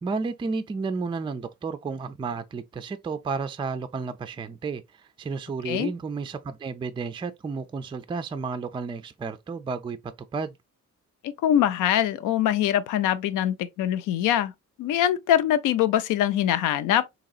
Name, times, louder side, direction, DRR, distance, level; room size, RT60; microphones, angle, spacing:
voice 1, 0.0-10.0 10.3-10.6, right 4 dB, 15° right, 0.3 m, -32 dB
voice 2, 11.2-14.5 14.8-17.0, left 11 dB, 85° left, 0.5 m, -23 dB
3.8 x 2.9 x 2.4 m
cardioid pair, 90°, 30 cm